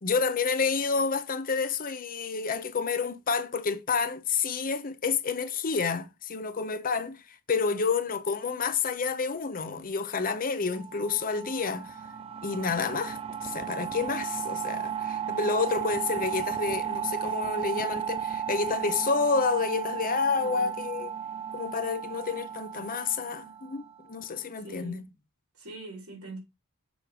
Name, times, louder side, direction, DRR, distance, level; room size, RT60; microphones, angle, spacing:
voice 1, 0.0-12.0 12.4-21.1 21.5-25.1, left 5 dB, 40° left, 0.7 m, -29 dB
sound 1, 10.7-24.2, right 8 dB, 25° right, 0.5 m, -34 dB
voice 2, 20.4-20.8 24.6-25.0 25.6-26.4, right 2 dB, 75° right, 3.7 m, -43 dB
7.0 x 3.2 x 6.1 m
head